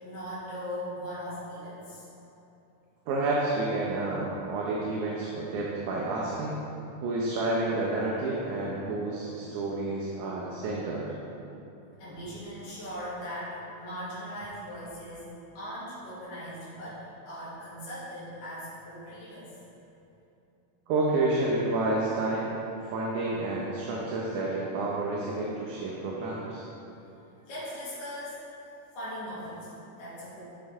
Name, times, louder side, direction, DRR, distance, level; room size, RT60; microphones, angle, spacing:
voice 1, 0.0-2.0 12.0-15.3 15.6-19.5 27.5-28.4 29.0-30.4, equal, 85° left, -11 dB, 3.7 m, -39 dB
voice 2, 3.1-6.6 7.0-11.1 20.9-22.5 22.8-26.7, right 2 dB, 75° right, -4 dB, 2.2 m, -29 dB
11.5 x 5.6 x 3.5 m, 2.9 s
omnidirectional pair, 3.7 m